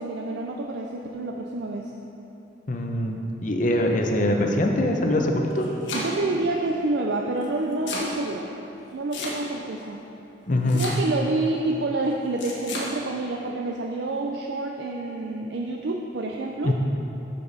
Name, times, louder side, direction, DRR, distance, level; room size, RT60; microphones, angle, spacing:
voice 1, 0.0-1.9 3.7-3.8 5.9-8.5 8.9-10.0 10.7-16.7, right 2 dB, 65° right, 1 dB, 0.4 m, -28 dB
voice 2, 2.7-5.7 10.5-10.9 16.6-16.7, left 1 dB, 45° left, 2 dB, 0.7 m, -23 dB
Domestic sounds home sounds, 5.3-6.4 7.4-8.1 9.1-9.7 10.7-11.3 12.4-12.9, left 2 dB, 80° left, 1.4 m, -32 dB
8.6 x 6.8 x 4.1 m, 3.0 s
head